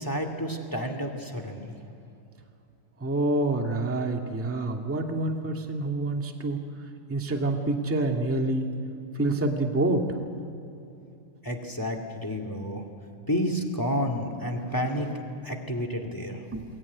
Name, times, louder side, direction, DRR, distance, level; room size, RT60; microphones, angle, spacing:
voice 1, 0.0-1.8 11.4-12.8 13.3-16.4, equal, 10° left, 5 dB, 1.5 m, -30 dB
voice 2, 3.0-6.6 7.1-8.7 9.1-10.1 16.5-16.6, right 2 dB, 10° right, 2 dB, 0.9 m, -27 dB
22.5 x 21.0 x 9.7 m, 2.7 s
omnidirectional pair, 3.8 m